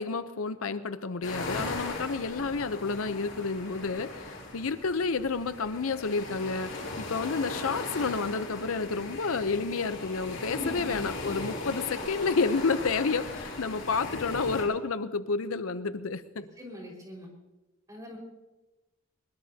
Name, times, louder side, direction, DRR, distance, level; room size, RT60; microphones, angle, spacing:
voice 1, 0.0-4.2 4.5-16.5, left 4 dB, 75° left, 12 dB, 0.7 m, -30 dB
sound 1, 1.2-14.6, left 2 dB, 55° left, 6.9 m, -38 dB
voice 2, 10.4-10.8 16.6-17.3 17.9-18.2, equal, 15° right, -1 dB, 5.0 m, -40 dB
23.0 x 20.5 x 2.8 m, 1.1 s
head